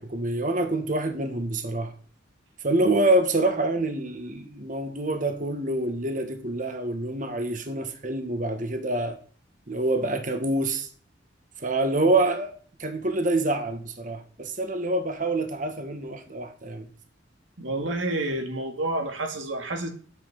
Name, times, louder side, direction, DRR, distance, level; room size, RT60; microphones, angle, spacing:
voice 1, 0.0-1.9 2.6-9.2 9.7-10.9 11.6-12.5 12.8-16.9, right 2 dB, 45° right, 1.6 m, -26 dB
voice 2, 17.6-19.9, right 2 dB, 90° right, 2.3 m, -29 dB
8.7 x 8.5 x 7.0 m
head